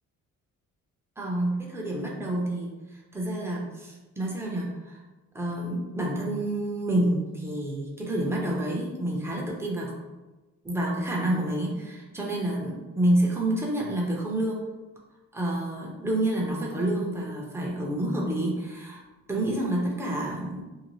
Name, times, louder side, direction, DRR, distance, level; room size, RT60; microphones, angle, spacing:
voice 1, 1.2-5.0 5.3-9.9 10.6-14.7 15.3-19.0 19.3-20.6, right 1 dB, 10° right, -2 dB, 0.7 m, -28 dB
2.7 x 2.0 x 3.1 m, 1.1 s
cardioid pair, 90°, 30 cm